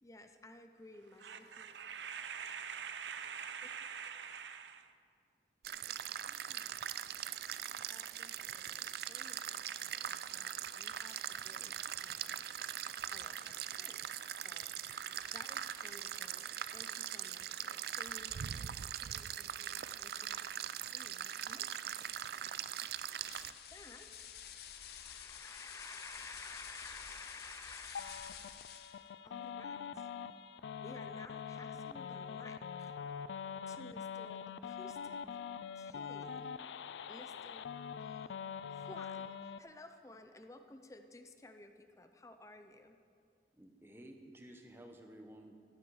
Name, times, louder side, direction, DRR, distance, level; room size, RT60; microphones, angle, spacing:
voice 1, 0.0-1.8 6.0-7.2 7.6-12.4 12.8-22.5 22.8-23.2 23.5-28.7 29.2-30.1 30.8-32.9 33.7-35.4 35.7-36.5 37.1-38.3 38.7-43.0, left 2 dB, 20° left, 0.5 m, -56 dB
voice 2, 1.2-4.9, right 7 dB, 90° right, 0.7 m, -44 dB
sound 1, 5.6-23.5, right 10 dB, 60° right, 0.4 m, -41 dB
sound 2, 23.2-29.1, left 9 dB, 65° left, 0.7 m, -50 dB
sound 3, 27.9-39.6, left 7 dB, 90° left, 0.4 m, -44 dB
voice 3, 43.5-45.5, right 1 dB, 15° right, 1.0 m, -54 dB
14.5 x 12.5 x 4.8 m
head